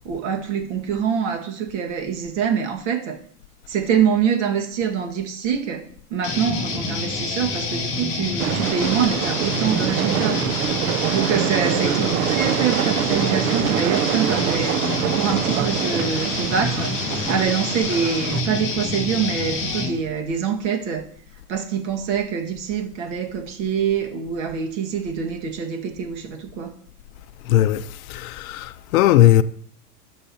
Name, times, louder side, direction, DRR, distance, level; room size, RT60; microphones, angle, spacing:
voice 1, 0.1-3.2 3.7-5.8 6.1-10.4 11.1-14.8 15.1-21.0 21.5-26.7, right 7 dB, 50° right, 1.7 m, -25 dB
sound 1, 6.2-20.0, left 3 dB, 25° left, 2.0 m, -27 dB
Train, 8.4-18.4, right 10 dB, 65° right, 0.7 m, -25 dB
voice 2, 27.5-27.8 28.1-29.4, left 13 dB, 60° left, 0.6 m, -17 dB
17.0 x 6.6 x 2.8 m
supercardioid pair, 155°, 47 cm